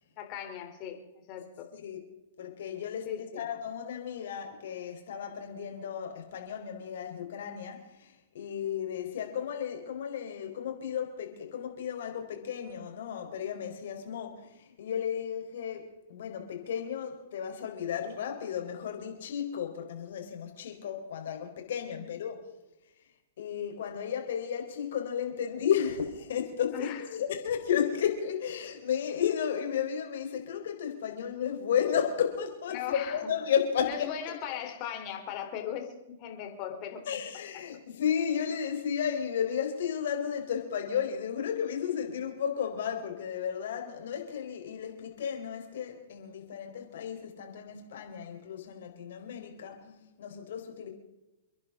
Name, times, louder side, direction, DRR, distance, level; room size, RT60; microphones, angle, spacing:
voice 1, 0.2-1.0 1.3-1.7 3.1-3.4 21.9-22.2 26.7-27.0 32.7-33.2 33.8-37.0, left 10 dB, 40° left, 3.7 m, -38 dB
voice 2, 1.7-2.1 2.4-3.1 3.3-22.4 23.4-34.1 37.1-50.9, left 8 dB, 65° left, 4.2 m, -33 dB
29.0 x 11.0 x 3.8 m
hypercardioid pair, 115°, 0 cm